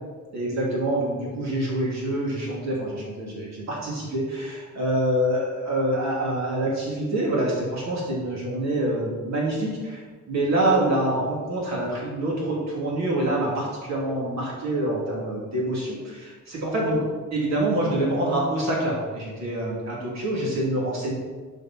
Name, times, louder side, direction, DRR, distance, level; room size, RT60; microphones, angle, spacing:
voice 1, 0.3-10.0 10.3-17.0 17.3-21.1, right 1 dB, 60° right, -4 dB, 3.2 m, -26 dB
12.0 x 5.5 x 4.6 m, 1.4 s
wide cardioid pair, 155°, 31 cm